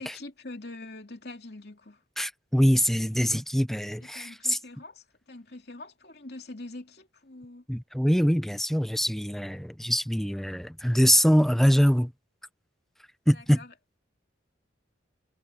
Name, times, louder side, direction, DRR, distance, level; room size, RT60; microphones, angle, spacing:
voice 1, 0.0-2.0 4.0-7.6 13.3-13.7, left 2 dB, 55° left, 3.0 m, -44 dB
voice 2, 2.2-4.6 7.7-12.1 13.3-13.6, equal, ahead, 0.8 m, -23 dB
head